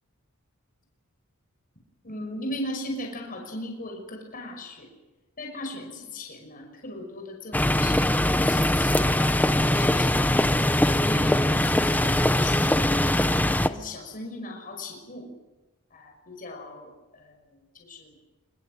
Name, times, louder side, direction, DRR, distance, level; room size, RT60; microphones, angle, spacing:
voice 1, 2.0-4.9 5.4-10.4 10.7-15.3 15.9-18.1, left 1 dB, 40° left, 2 dB, 5.8 m, -38 dB
sound 1, 7.5-13.7, left 1 dB, 10° left, 0.9 m, -22 dB
25.0 x 23.5 x 7.6 m, 1.1 s
head